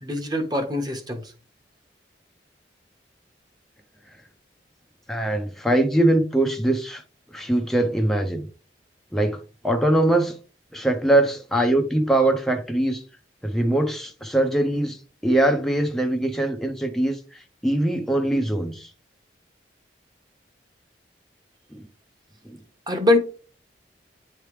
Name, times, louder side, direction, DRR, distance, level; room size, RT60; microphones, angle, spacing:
voice 1, 0.0-1.2 22.9-23.2, left 2 dB, 25° right, 1.3 m, -22 dB
voice 2, 5.1-7.0 7.3-8.5 9.1-9.4 9.6-10.4 10.7-13.0 13.4-18.9 21.7-21.8 22.4-22.6, right 1 dB, ahead, 0.7 m, -22 dB
9.4 x 3.3 x 3.2 m
head